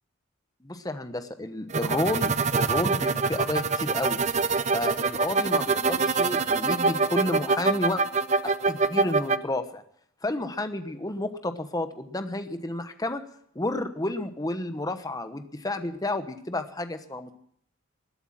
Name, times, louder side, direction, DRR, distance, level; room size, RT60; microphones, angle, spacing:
voice 1, 0.6-4.2 4.7-8.0 8.4-9.8 10.2-13.2 13.5-17.3, left 1 dB, 20° left, 9 dB, 1.0 m, -31 dB
sound 1, 1.7-9.4, right 4 dB, 35° right, 0.5 m, -25 dB
20.5 x 8.2 x 7.4 m, 0.68 s
head